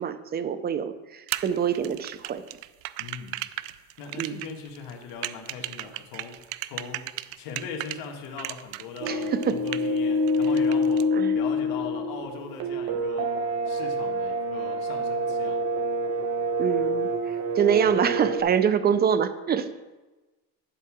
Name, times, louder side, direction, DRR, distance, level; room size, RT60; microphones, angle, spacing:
voice 1, 0.0-2.4 4.2-4.4 9.1-9.6 11.1-11.4 16.6-19.7, right 8 dB, 25° right, 12 dB, 0.5 m, -25 dB
sound 1, 1.3-8.0 8.4-10.0 10.3-11.0, right 17 dB, 75° right, 0.5 m, -35 dB
voice 2, 3.0-3.7 4.0-7.1 7.4-13.4 13.7-15.6, left 5 dB, 65° left, 2 dB, 1.7 m, -40 dB
sound 2, 9.0-18.4, equal, 45° right, 1.1 m, -27 dB
11.0 x 4.7 x 6.1 m, 1.2 s
cardioid pair, 125°, 38 cm